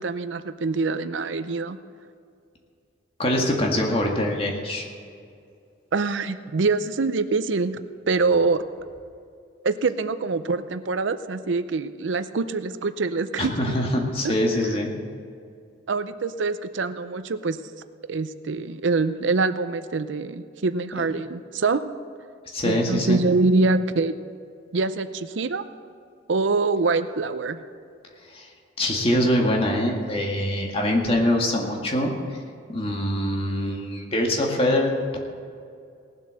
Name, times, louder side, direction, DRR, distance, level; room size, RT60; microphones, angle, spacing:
voice 1, 0.0-1.8 5.9-7.8 8.1-8.6 9.6-13.9 14.2-14.3 15.9-17.6 18.1-21.8 22.6-24.2 24.7-25.6 26.3-27.6, right 3 dB, 80° right, 12 dB, 0.6 m, -24 dB
voice 2, 3.2-4.9 13.4-14.9 22.5-23.2 28.3-28.5 28.8-32.1 32.7-35.2, left 1 dB, 30° left, 0 dB, 1.9 m, -23 dB
18.5 x 7.8 x 6.4 m, 2.4 s
head